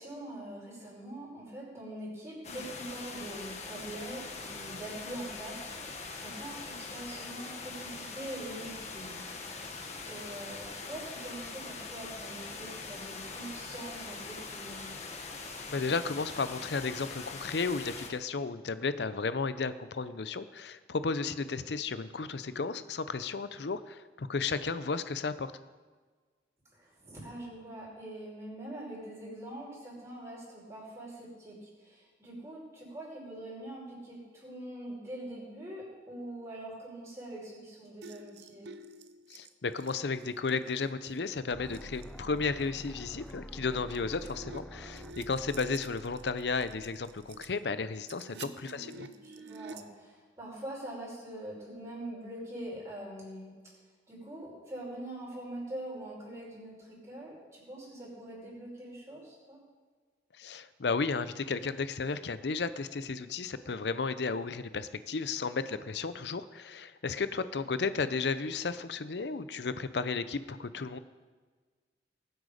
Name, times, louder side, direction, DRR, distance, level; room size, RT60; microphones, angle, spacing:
voice 1, 0.0-9.2 10.1-14.9 26.7-38.7 48.2-53.7 54.1-59.6, right 1 dB, 15° right, -5 dB, 4.9 m, -44 dB
sound 1, 2.4-18.1, left 4 dB, 40° left, 1.2 m, -42 dB
voice 2, 15.7-25.5 39.3-49.1 60.4-71.0, left 4 dB, 75° left, 13 dB, 0.6 m, -33 dB
sound 2, 38.0-40.9 41.2-41.4 41.7-42.1 42.6-42.7 43.3-43.4 43.7-47.5 47.9-49.8, right 3 dB, 75° right, 0.8 m, -49 dB
sound 3, 41.5-47.5, equal, 5° left, 0.5 m, -48 dB
20.0 x 8.0 x 5.1 m, 1.4 s
head